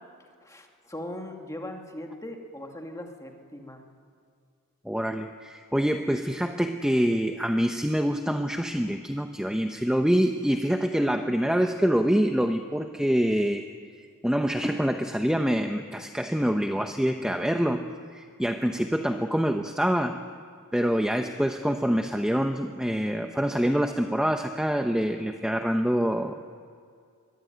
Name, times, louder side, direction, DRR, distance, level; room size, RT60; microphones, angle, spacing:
voice 1, 0.4-3.8, left 1 dB, 15° left, 2 dB, 2.6 m, -39 dB
voice 2, 4.8-13.6 14.2-17.8 18.1-20.2 20.7-26.4, equal, 5° right, 5 dB, 0.8 m, -25 dB
23.0 x 22.5 x 9.2 m, 2.2 s
head